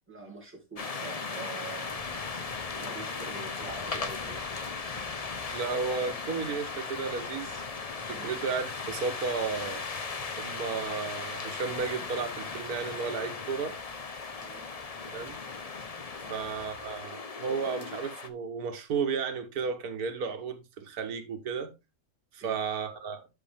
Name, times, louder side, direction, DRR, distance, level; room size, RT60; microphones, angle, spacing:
voice 1, 0.1-2.1 2.8-4.4 8.1-8.3 14.4-14.7 16.2-16.4 22.4-22.6, right 4 dB, 10° right, 2.5 m, -45 dB
sound 1, 0.8-18.3, left 4 dB, 35° left, 0.7 m, -37 dB
voice 2, 5.5-7.6 8.1-9.8 10.4-13.8 15.1-15.4 16.3-21.7 22.3-23.3, right 5 dB, 90° right, 1.6 m, -33 dB
8.3 x 6.1 x 3.5 m
omnidirectional pair, 1.5 m